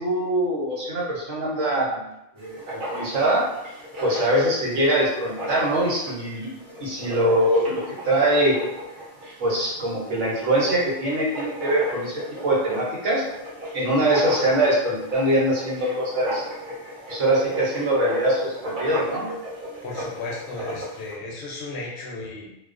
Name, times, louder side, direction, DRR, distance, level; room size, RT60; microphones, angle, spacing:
voice 1, 0.0-2.1 2.4-3.4 4.0-6.5 6.8-8.6 9.4-13.2 13.7-16.4 17.1-19.3, right 1 dB, 90° right, -4 dB, 1.1 m, -23 dB
Writing, 2.4-21.1, equal, 50° right, 0.8 m, -36 dB
voice 2, 19.8-22.5, left 3 dB, 70° left, -2 dB, 0.8 m, -35 dB
2.3 x 2.2 x 2.4 m, 0.85 s
omnidirectional pair, 1.2 m